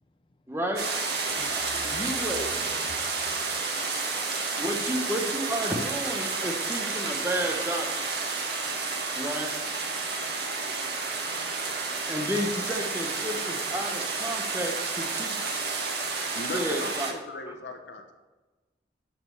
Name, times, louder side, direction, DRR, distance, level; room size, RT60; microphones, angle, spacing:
voice 1, 0.5-0.8 1.8-2.7 4.6-7.9 9.2-9.7 12.1-15.7 16.5-17.1 17.5-17.6, equal, 15° right, 2 dB, 1.1 m, -32 dB
sound 1, 0.8-17.1, right 4 dB, 65° right, 1.6 m, -31 dB
voice 2, 1.3-3.5, left 2 dB, 30° left, 7 dB, 0.5 m, -45 dB
voice 3, 16.3-18.1, left 2 dB, 90° left, 4 dB, 1.2 m, -38 dB
11.0 x 4.5 x 6.8 m, 1.2 s
head